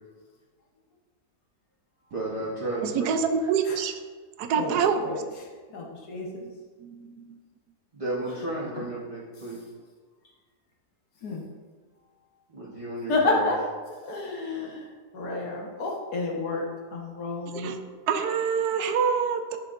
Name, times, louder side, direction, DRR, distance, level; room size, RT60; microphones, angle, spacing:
voice 1, 2.1-3.1 7.9-9.6 12.5-13.4, right 1 dB, 25° right, -7 dB, 0.8 m, -33 dB
voice 2, 2.8-4.0 4.4-5.0 6.8-7.4 17.5-17.8 18.1-19.6, right 6 dB, 80° right, 7 dB, 1.1 m, -26 dB
voice 3, 4.6-6.5 8.2-8.5 8.8-8.9 9.4-9.6 11.2-11.4 13.1-13.6 13.9-17.8, left 3 dB, 75° left, -1 dB, 1.7 m, -31 dB
10.5 x 4.7 x 2.5 m, 1.4 s
omnidirectional pair, 1.7 m